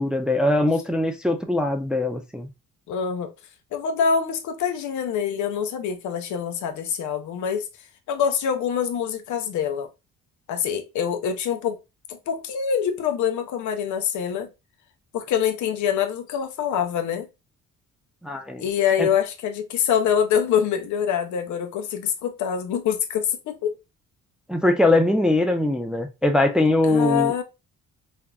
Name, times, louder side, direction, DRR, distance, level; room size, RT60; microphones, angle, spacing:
voice 1, 0.0-2.5 18.2-18.6 19.0-19.1 24.5-27.3, left 2 dB, 5° right, 0.3 m, -21 dB
voice 2, 2.9-3.3 3.7-7.7 8.1-9.9 10.5-11.8 12.1-14.5 15.1-17.3 18.6-23.7 26.9-27.4, left 8 dB, 75° left, 0.6 m, -25 dB
3.4 x 2.0 x 2.3 m
cardioid pair, 90°, 30 cm